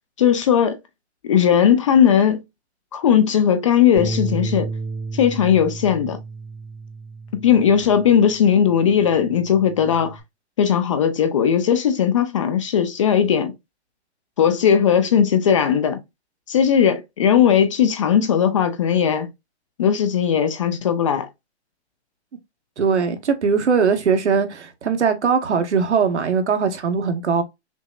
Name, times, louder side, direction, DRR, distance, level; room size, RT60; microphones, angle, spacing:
voice 1, 0.2-0.8 1.2-2.4 2.9-4.7 5.1-6.2 7.3-10.2 10.6-13.5 14.4-16.0 16.5-19.3 19.8-21.3, left 8 dB, 30° left, 0.4 m, -18 dB
Bass guitar, 4.0-8.4 8.8-10.2, right 3 dB, 75° left, 1.5 m, -32 dB
voice 2, 22.8-27.4, right 6 dB, 80° right, 1.1 m, -20 dB
5.8 x 2.0 x 2.3 m
hypercardioid pair, 140°, 34 cm